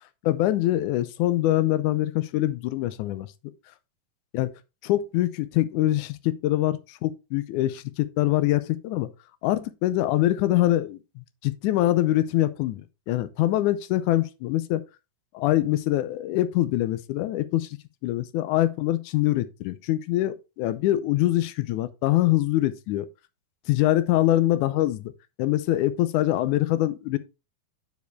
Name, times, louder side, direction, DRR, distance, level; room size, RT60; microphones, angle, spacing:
voice 1, 0.2-3.3 4.3-4.5 4.8-9.1 9.4-14.8 15.3-17.7 18.0-23.1 23.7-25.1 25.4-27.2, left 15 dB, 80° left, 2.0 m, -24 dB
9.2 x 4.8 x 3.5 m
omnidirectional pair, 3.8 m